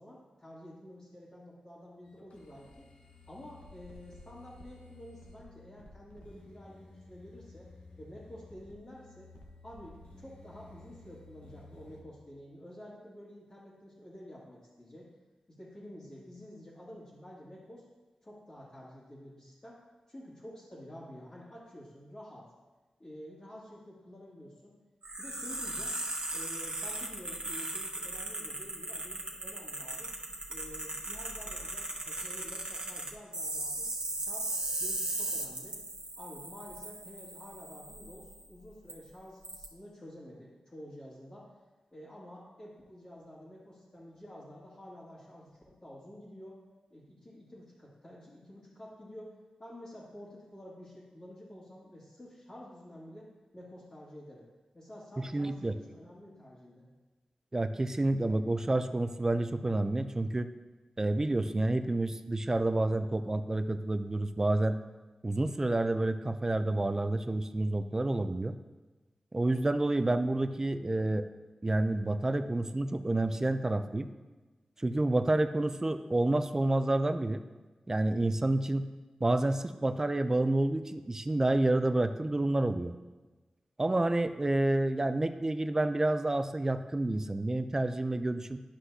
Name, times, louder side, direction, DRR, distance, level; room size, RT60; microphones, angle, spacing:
voice 1, 0.0-2.9 3.3-7.7 8.0-9.3 9.6-15.1 15.5-17.9 18.2-19.8 20.1-22.5 23.0-24.7 25.2-26.0 26.3-30.1 30.5-33.9 34.2-35.8 36.2-41.5 41.9-46.6 46.9-49.3 49.6-54.4 54.7-56.9, left 1 dB, 35° left, -10 dB, 2.0 m, -50 dB
sound 1, 2.0-12.0, left 2 dB, 85° left, 1.1 m, -54 dB
sound 2, 25.0-38.4 38.9-39.0 39.4-39.6, right 2 dB, 45° right, 1.1 m, -38 dB
voice 2, 55.2-55.7 57.5-60.5 61.0-64.8 65.2-68.6 69.3-71.3 71.6-74.1 74.8-77.4 77.9-78.9 79.2-82.9 83.8-88.6, right 2 dB, 25° right, 10 dB, 0.4 m, -29 dB
11.5 x 5.7 x 2.8 m, 1.2 s
wide cardioid pair, 75°, 2 cm